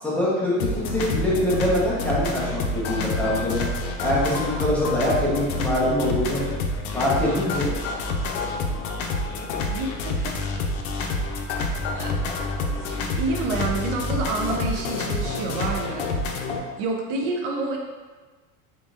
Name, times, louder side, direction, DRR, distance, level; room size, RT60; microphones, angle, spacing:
voice 1, 0.0-3.7 4.0-6.4 6.9-7.7, left 1 dB, 5° left, -8 dB, 1.0 m, -24 dB
sound 1, 0.6-16.6, left 2 dB, 90° left, 0.7 m, -28 dB
voice 2, 9.7-10.3 11.9-12.3 12.7-16.3 16.8-17.8, right 3 dB, 60° right, 1 dB, 0.6 m, -29 dB
3.8 x 3.7 x 2.5 m, 1.4 s
supercardioid pair, 130°, 41 cm